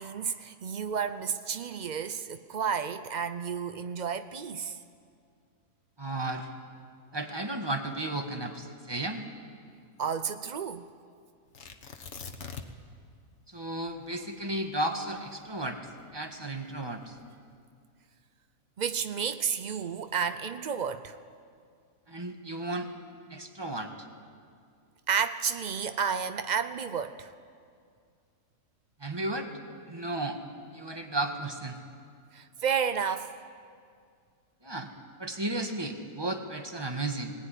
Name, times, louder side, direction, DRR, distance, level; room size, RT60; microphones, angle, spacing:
voice 1, 0.0-4.8 10.0-10.9 18.8-21.2 25.1-27.3 32.3-33.3, right 7 dB, 85° right, 10 dB, 0.4 m, -31 dB
voice 2, 6.0-6.5 7.1-9.2 13.5-15.8 16.1-17.2 22.1-22.9 23.3-23.9 29.0-29.5 29.8-30.4 30.7-31.8 34.6-34.9 35.2-37.3, right 2 dB, 15° right, 5 dB, 1.5 m, -34 dB
Tearing, 11.5-12.9 13.2-13.3 13.9-16.2 16.9-17.4, left 5 dB, 45° left, 1.4 m, -44 dB
20.5 x 18.5 x 10.0 m, 2.2 s
omnidirectional pair, 1.7 m